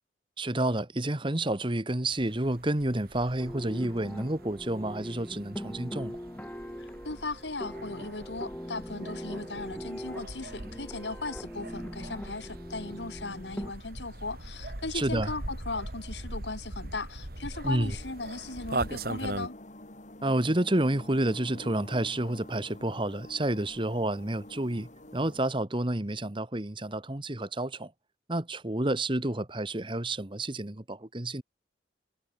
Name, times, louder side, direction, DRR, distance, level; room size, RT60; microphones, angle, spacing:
voice 1, 0.4-6.2 14.9-15.3 17.6-17.9 20.2-27.9 28.3-31.4, right 1 dB, 25° right, 1.5 m, -30 dB
sound 1, 2.1-19.5, right 2 dB, 55° right, 2.5 m, -41 dB
sound 2, 3.4-13.7, equal, 10° left, 2.3 m, -41 dB
voice 2, 6.8-19.5, left 3 dB, 70° left, 2.5 m, -37 dB
sound 3, 17.9-25.4, left 1 dB, 40° left, 2.4 m, -48 dB
head